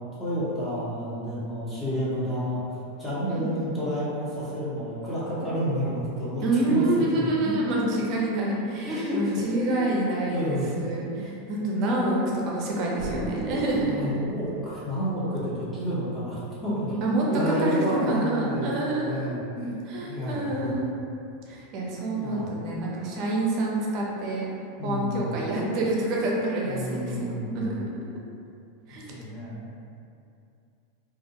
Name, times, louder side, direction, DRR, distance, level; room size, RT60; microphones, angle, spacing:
voice 1, 0.2-2.6 3.0-7.9 8.9-10.7 11.2-11.3 12.6-12.9 13.6-17.0 17.3-19.8 20.1-20.7 22.1-22.5 24.8-25.3 26.6-28.1 29.1-29.7, equal, 5° left, -10 dB, 0.8 m, -30 dB
voice 2, 3.3-3.7 6.4-14.3 17.0-19.4 19.9-20.9 21.5-24.5 24.8-27.8 28.9-29.1, right 2 dB, 45° right, -3 dB, 0.6 m, -27 dB
Explosion, 13.0-15.7, equal, 35° left, 1.3 m, -36 dB
2.3 x 2.1 x 2.8 m, 2.5 s
supercardioid pair, 120°, 0 cm